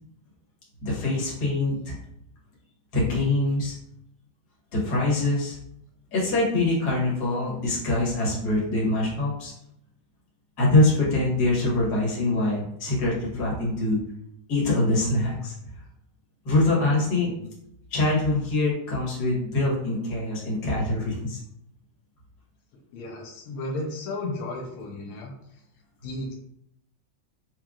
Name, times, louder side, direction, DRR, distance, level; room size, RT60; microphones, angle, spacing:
voice 1, 0.8-2.0 2.9-3.7 4.7-5.6 6.1-9.5 10.6-14.0 14.5-15.5 16.5-17.3 17.9-21.4, left 2 dB, 55° left, -5 dB, 1.8 m, -24 dB
voice 2, 17.2-17.5 22.9-25.3 26.0-26.3, left 2 dB, 90° left, 1 dB, 1.6 m, -34 dB
4.8 x 2.9 x 2.4 m, 0.76 s
omnidirectional pair, 2.3 m